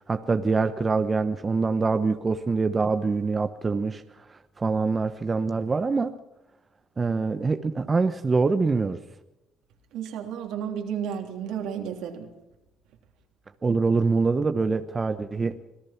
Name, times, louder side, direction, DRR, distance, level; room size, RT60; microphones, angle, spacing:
voice 1, 0.1-4.0 4.6-6.1 7.0-9.0 13.6-15.6, right 4 dB, 25° right, 9 dB, 1.0 m, -24 dB
voice 2, 9.9-12.3, right 8 dB, 80° right, 3 dB, 3.3 m, -32 dB
26.0 x 17.5 x 5.9 m, 0.92 s
cardioid pair, 95°, 0 cm